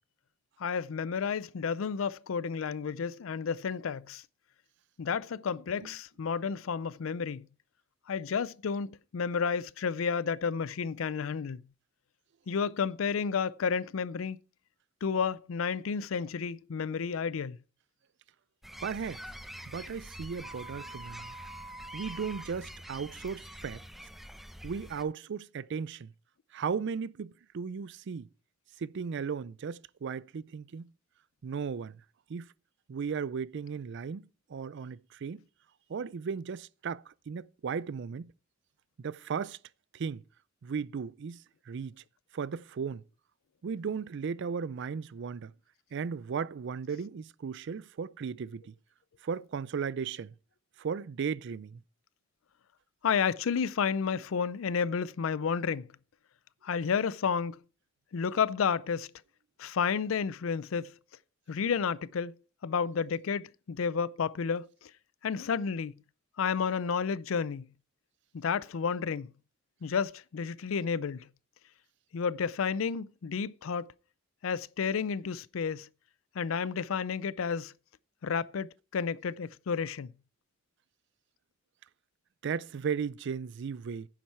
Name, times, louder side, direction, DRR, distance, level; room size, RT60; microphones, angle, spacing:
voice 1, 0.6-4.2 5.0-7.5 8.1-11.6 12.5-14.4 15.0-17.6 53.0-55.9 56.6-57.6 58.1-59.1 59.6-60.9 61.5-62.3 62.6-64.9 65.2-66.0 66.4-67.7 68.3-69.3 69.8-71.3 72.1-73.9 74.4-75.9 76.3-77.7 78.2-80.1, left 6 dB, 85° left, 0.4 m, -31 dB
sound 1, 18.6-25.0, equal, ahead, 0.6 m, -46 dB
voice 2, 18.8-19.2 19.7-21.4 21.9-23.8 24.6-26.1 26.5-28.3 28.8-30.9 31.4-32.0 32.3-32.5 32.9-35.4 35.9-38.3 39.0-39.6 39.9-40.2 40.6-42.0 42.3-43.0 43.6-45.5 45.9-48.7 49.2-50.3 50.8-51.8 82.4-84.1, right 6 dB, 60° right, 0.4 m, -36 dB
sound 2, 20.4-22.4, right 2 dB, 20° right, 1.7 m, -46 dB
10.0 x 7.3 x 4.6 m
head